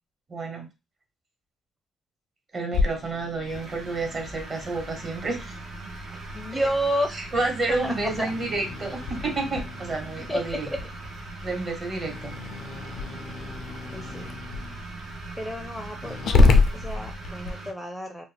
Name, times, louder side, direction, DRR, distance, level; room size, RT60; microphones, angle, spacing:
voice 1, 0.3-0.7 2.5-5.6 6.5-6.6 7.1-10.7 11.4-12.3, right 3 dB, 40° right, 3 dB, 1.1 m, -30 dB
Growling, 2.7-17.5, left 3 dB, 70° left, 0.4 m, -29 dB
sound 1, 3.4-17.7, right 3 dB, 70° right, 0.7 m, -41 dB
voice 2, 6.3-7.2 7.7-8.3 10.3-10.8 13.9-14.3 15.4-18.2, equal, 5° left, 3 dB, 0.5 m, -31 dB
2.4 x 2.1 x 3.3 m, 0.25 s
cardioid pair, 90°, 0 cm